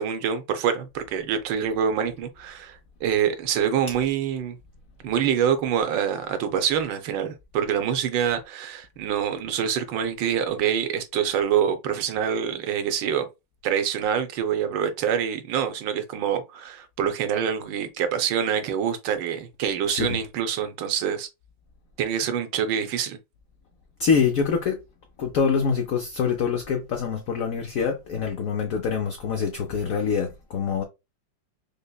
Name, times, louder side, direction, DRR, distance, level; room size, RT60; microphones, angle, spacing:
voice 1, 0.0-4.6 5.0-13.3 13.6-21.3 22.0-23.2, right 8 dB, 80° right, 1.3 m, -26 dB
voice 2, 24.0-24.8 25.2-30.8, left 6 dB, 80° left, 0.7 m, -25 dB
5.2 x 2.1 x 2.2 m
omnidirectional pair, 2.0 m